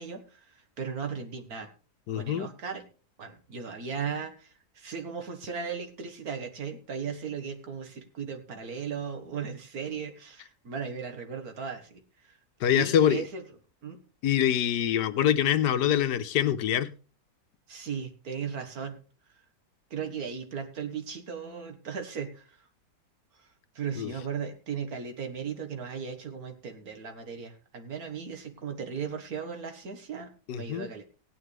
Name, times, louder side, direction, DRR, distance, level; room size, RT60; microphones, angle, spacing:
voice 1, 0.0-1.7 2.1-2.8 3.2-12.4 12.7-13.4 13.8-14.0 17.7-19.0 19.9-22.6 23.4-23.5 23.8-31.0, right 6 dB, 65° right, 6 dB, 1.9 m, -37 dB
voice 2, 2.1-2.5 12.6-13.2 14.2-16.9 24.0-24.1 30.5-30.9, left 10 dB, 90° left, 11 dB, 1.4 m, -25 dB
17.0 x 9.3 x 3.3 m, 0.37 s
omnidirectional pair, 1.7 m